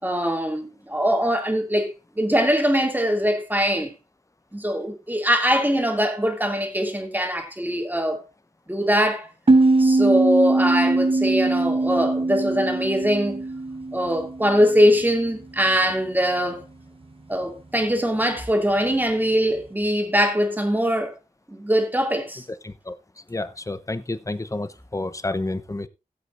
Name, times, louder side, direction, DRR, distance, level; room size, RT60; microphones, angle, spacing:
voice 1, 0.0-3.9 4.5-8.2 8.7-9.3 9.8-13.4 13.9-16.7 17.3-21.1 21.5-22.4, equal, 10° right, 2.6 m, -22 dB
sound 1, 9.5-14.8, right 2 dB, 40° right, 1.0 m, -21 dB
voice 2, 22.6-22.9 23.3-25.9, left 2 dB, 20° left, 0.8 m, -30 dB
17.0 x 8.2 x 2.6 m
wide cardioid pair, 75°, 15 cm